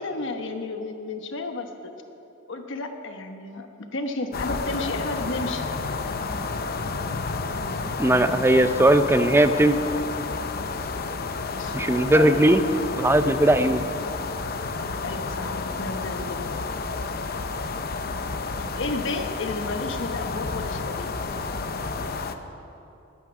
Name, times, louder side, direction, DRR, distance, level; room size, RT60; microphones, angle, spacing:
voice 1, 0.0-1.9 2.5-5.6 11.4-12.5 15.0-16.6 18.6-21.1, left 3 dB, 65° left, 5 dB, 1.1 m, -32 dB
sound 1, 4.3-22.4, left 4 dB, 50° left, 0.7 m, -31 dB
voice 2, 8.0-9.8 11.7-12.6 13.0-13.8, right 1 dB, 10° right, 10 dB, 0.5 m, -18 dB
20.5 x 9.6 x 6.1 m, 2.8 s
head